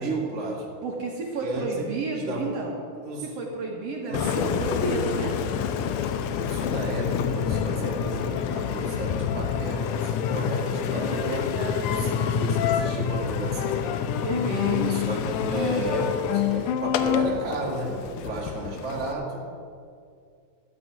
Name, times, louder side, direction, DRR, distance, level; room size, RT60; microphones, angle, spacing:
voice 1, 0.0-0.7 1.4-2.5 2.9-3.3 4.1-4.6 6.4-11.4 11.8-14.2 14.9-19.6, right 2 dB, 25° right, -2 dB, 2.0 m, -33 dB
voice 2, 0.8-2.8 3.4-5.4 10.9-12.4 14.2-15.0, right 3 dB, 60° right, -1 dB, 2.3 m, -31 dB
Engine, 4.1-19.1, left 8 dB, 90° left, 2.2 m, -27 dB
12.5 x 9.8 x 6.1 m, 2.2 s
omnidirectional pair, 3.5 m